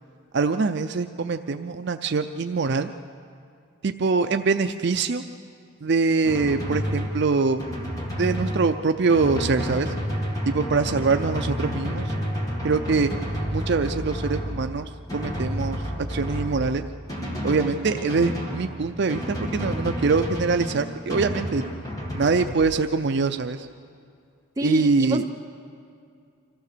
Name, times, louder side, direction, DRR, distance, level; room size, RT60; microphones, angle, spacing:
voice 1, 0.3-2.9 3.8-5.2 5.8-7.6 8.2-9.9 10.5-12.1 12.6-13.1 13.5-15.8 16.1-16.8 17.4-21.7 22.1-23.7 24.6-25.2, right 4 dB, 50° right, 7 dB, 0.5 m, -23 dB
Drum, 6.2-22.6, equal, 15° left, 2.0 m, -30 dB
voice 2, 24.6-25.2, right 1 dB, 15° right, 2 dB, 0.9 m, -27 dB
25.5 x 15.0 x 6.7 m, 2.4 s
head